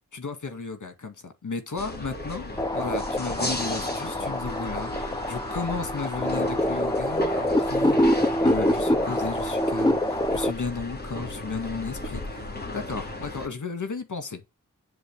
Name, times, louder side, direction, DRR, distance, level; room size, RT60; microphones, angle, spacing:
voice 1, 0.1-14.6, left 4 dB, 60° left, 2.0 m, -34 dB
sound 1, 1.8-13.5, left 2 dB, 30° left, 3.3 m, -36 dB
sound 2, 2.6-10.5, left 1 dB, 10° left, 0.9 m, -25 dB
10.0 x 3.9 x 7.3 m
wide cardioid pair, 85°, 34 cm